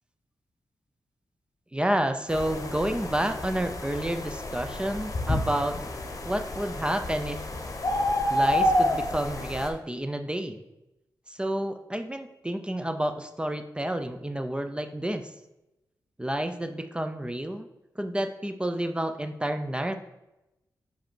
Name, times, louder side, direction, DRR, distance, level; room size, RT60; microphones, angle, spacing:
voice 1, 1.7-5.8 6.2-7.5 8.3-10.6 11.3-15.3 16.2-17.7 18.0-20.0, right 1 dB, 10° right, 7 dB, 0.5 m, -30 dB
sound 1, 2.3-9.7, left 1 dB, 45° left, 0.9 m, -29 dB
5.3 x 5.1 x 4.5 m, 0.94 s
cardioid pair, 65°, 8 cm